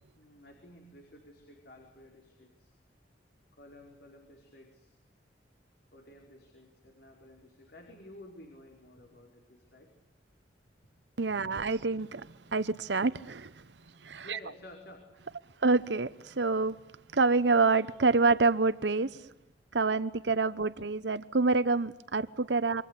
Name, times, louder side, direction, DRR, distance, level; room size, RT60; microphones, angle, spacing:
voice 1, 0.2-2.7 3.5-5.0 5.9-9.9 11.3-11.6 14.0-15.1, left 1 dB, 65° left, 5.2 m, -53 dB
voice 2, 11.2-14.4 15.6-16.8 17.1-19.3 19.7-22.8, right 3 dB, 75° right, 0.9 m, -27 dB
27.5 x 25.0 x 8.4 m
head